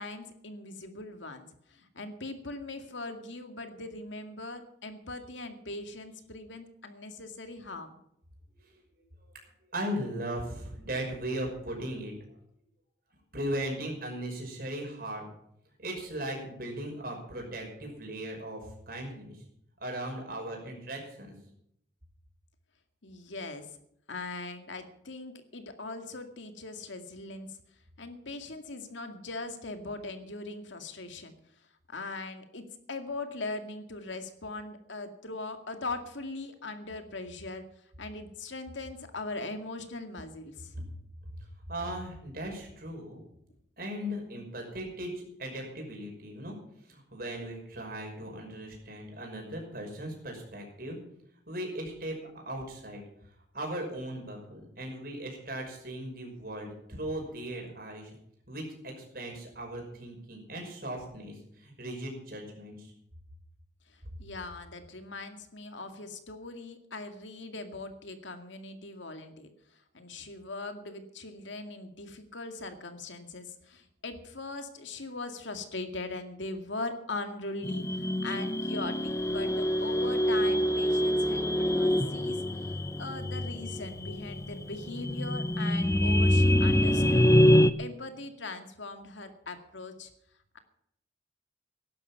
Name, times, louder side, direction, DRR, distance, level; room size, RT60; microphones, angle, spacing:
voice 1, 0.0-1.5 1.7-8.0 23.0-23.7 24.1-27.6 28.0-31.3 31.9-37.6 38.0-40.7 64.2-69.5 69.9-82.4 82.7-87.3 87.8-90.1, left 2 dB, 80° left, 6 dB, 2.1 m, -40 dB
voice 2, 9.7-12.1 13.3-15.3 15.8-18.6 18.9-19.4 19.8-21.3 41.7-43.2 43.8-46.6 46.9-51.0 51.5-52.2 52.5-53.0 53.5-58.2 58.5-62.9, right 1 dB, 50° right, 1 dB, 5.8 m, -38 dB
sound 1, 77.6-87.7, equal, 15° left, 0.6 m, -25 dB
16.5 x 12.0 x 5.6 m, 0.73 s
head